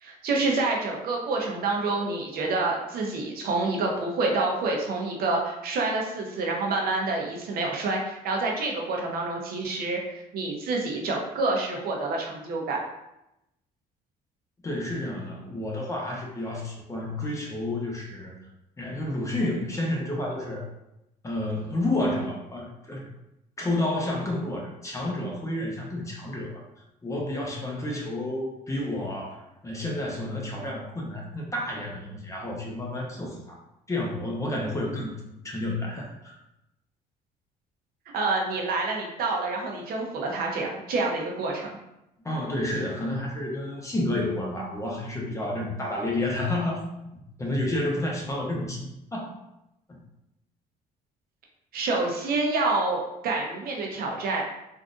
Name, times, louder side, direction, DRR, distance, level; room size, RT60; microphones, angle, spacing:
voice 1, 0.0-12.8 38.1-41.7 51.7-54.4, right 3 dB, 60° right, 0 dB, 0.7 m, -27 dB
voice 2, 14.6-18.4 18.8-20.6 21.2-23.1 23.6-26.6 27.0-33.6 33.9-36.4 42.2-46.8 47.4-49.3, left 1 dB, 20° left, -2 dB, 0.8 m, -30 dB
3.6 x 2.5 x 2.5 m, 0.87 s
cardioid pair, 110°, 17 cm